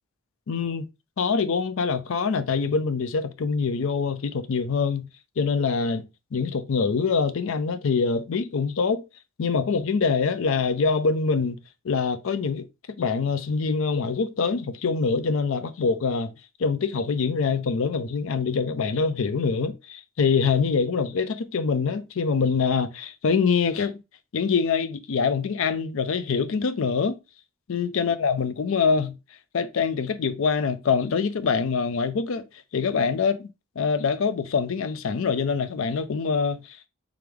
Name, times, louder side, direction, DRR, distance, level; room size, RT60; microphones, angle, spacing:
voice 1, 0.5-0.8 1.2-5.1 5.4-6.1 6.3-9.0 9.4-11.6 11.8-12.7 13.0-16.3 16.6-24.0 24.3-27.2 27.7-29.2 29.5-32.5 32.7-33.5 33.8-36.8, left 5 dB, 60° left, 0.4 m, -24 dB
3.4 x 3.4 x 3.4 m
head